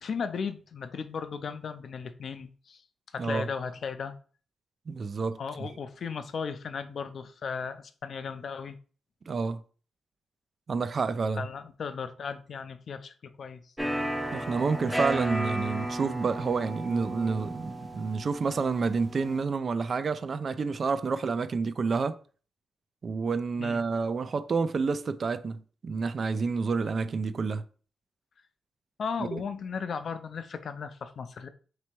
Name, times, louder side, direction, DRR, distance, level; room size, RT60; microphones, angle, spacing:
voice 1, 0.0-2.8 3.1-4.2 5.4-8.8 11.4-13.7 23.6-23.8 29.0-31.5, left 6 dB, 55° left, 0.4 m, -36 dB
voice 2, 4.9-5.4 9.3-9.6 10.7-11.5 14.3-22.2 23.0-27.6 29.3-29.4, right 4 dB, 45° right, 0.3 m, -29 dB
sound 1, 13.8-19.4, right 1 dB, 5° right, 0.6 m, -34 dB
3.3 x 3.0 x 4.4 m
cardioid pair, 105°, 0 cm